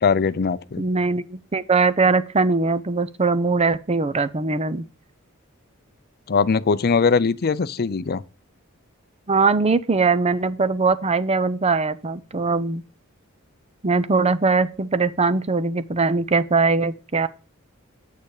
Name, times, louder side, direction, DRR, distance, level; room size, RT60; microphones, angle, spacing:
voice 1, 0.0-0.8 6.3-8.2, left 5 dB, 50° left, 0.5 m, -21 dB
voice 2, 0.8-4.8 9.3-12.8 13.8-17.3, right 4 dB, 30° right, 0.6 m, -21 dB
8.4 x 6.8 x 4.8 m
head